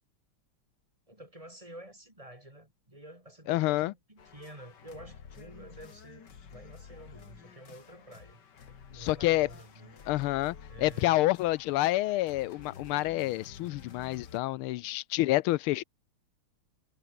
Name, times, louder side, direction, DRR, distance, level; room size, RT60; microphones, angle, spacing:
voice 1, 1.1-8.4 8.9-10.0 10.7-11.3, right 1 dB, 15° right, 5.0 m, -49 dB
voice 2, 3.5-3.9 8.9-9.5 10.1-15.8, left 17 dB, 85° left, 1.5 m, -28 dB
sound 1, 4.2-14.4, left 7 dB, 55° left, 2.4 m, -51 dB
omnidirectional pair, 2.3 m